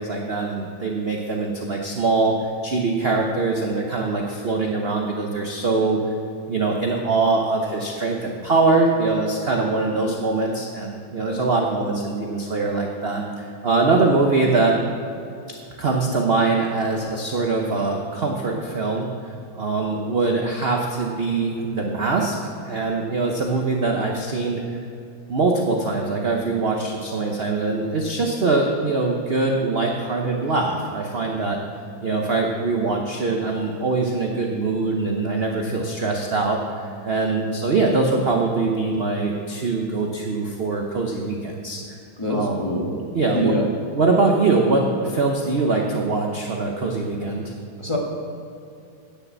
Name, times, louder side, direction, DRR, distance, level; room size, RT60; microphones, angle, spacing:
voice 1, 0.0-6.0 6.5-14.8 15.8-24.8 25.3-31.6 32.0-42.0 42.3-42.6 43.1-43.5 44.0-47.5, right 3 dB, 50° right, 1 dB, 0.7 m, -23 dB
voice 2, 42.2-43.0 43.3-43.6 47.8-48.0, equal, 20° left, -3 dB, 1.2 m, -24 dB
9.8 x 6.6 x 7.4 m, 2.6 s
omnidirectional pair, 2.2 m